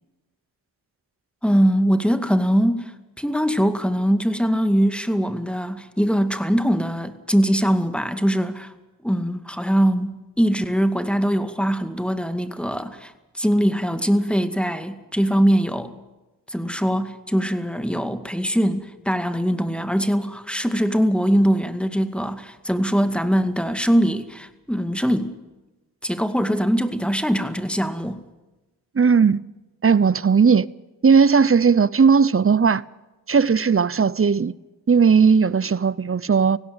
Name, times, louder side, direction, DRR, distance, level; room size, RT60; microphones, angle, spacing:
voice 1, 1.4-2.9 3.2-8.7 9.0-13.1 13.4-15.9 16.5-25.4 26.0-28.2, equal, ahead, 2.1 m, -22 dB
voice 2, 28.9-29.4 29.8-30.7 31.0-32.8 33.3-34.5 34.9-36.6, right 5 dB, 30° right, 0.8 m, -17 dB
18.5 x 16.5 x 8.9 m
cardioid pair, 50°, 43 cm